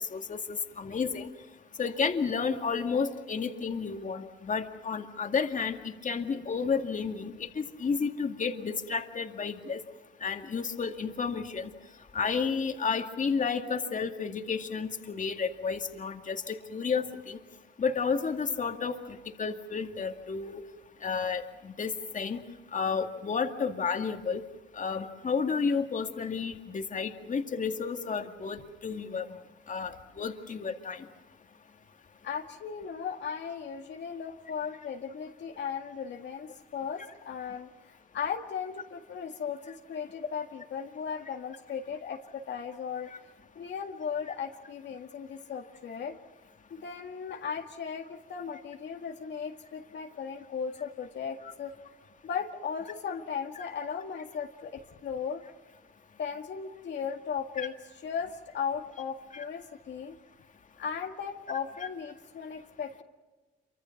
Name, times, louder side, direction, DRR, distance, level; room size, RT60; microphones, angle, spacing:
voice 1, 0.1-1.3 1.8-9.8 10.2-11.7 12.1-17.4 17.8-20.6 21.0-22.4 22.7-24.4 24.7-29.3 29.7-31.0 51.4-51.5 57.6-57.7 59.3-59.4 61.8-61.9, left 5 dB, 40° left, 5 dB, 2.2 m, -31 dB
voice 2, 32.2-43.1 43.6-46.2 46.7-51.7 52.2-55.4 56.2-57.8 58.0-60.2 60.8-63.0, left 6 dB, 65° left, 3 dB, 2.0 m, -37 dB
27.5 x 24.5 x 5.9 m, 1.2 s
cardioid pair, 90°, 20 cm